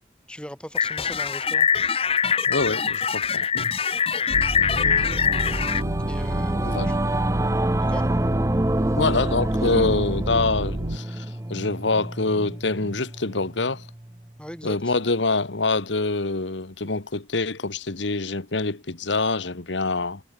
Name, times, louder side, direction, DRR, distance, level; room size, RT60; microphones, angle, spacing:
voice 1, 0.3-1.7 4.7-5.1 6.1-7.0 7.8-8.1 14.4-14.9, equal, 5° left, 6.6 m, -38 dB
sound 1, 0.7-5.8, left 7 dB, 30° left, 1.6 m, -23 dB
voice 2, 2.5-3.7 6.6-6.9 9.0-13.9 14.6-20.2, left 3 dB, 85° left, 1.5 m, -25 dB
sound 2, 4.3-11.0, right 1 dB, 55° right, 2.0 m, -30 dB
Singing / Musical instrument, 4.6-14.3, right 1 dB, 15° right, 0.7 m, -28 dB
head